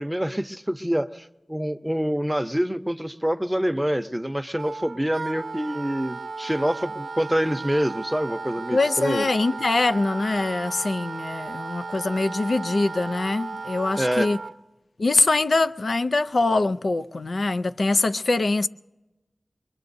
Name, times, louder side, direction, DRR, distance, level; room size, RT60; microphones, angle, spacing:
voice 1, 0.0-9.3 14.0-14.3, equal, 10° right, 0.7 m, -26 dB
Wind instrument woodwind instrument, 4.6-14.5, right 4 dB, 85° right, 0.5 m, -35 dB
voice 2, 8.7-14.4 15.0-18.7, left 3 dB, 75° left, 0.4 m, -23 dB
23.5 x 22.5 x 2.6 m
wide cardioid pair, 45°, 0 cm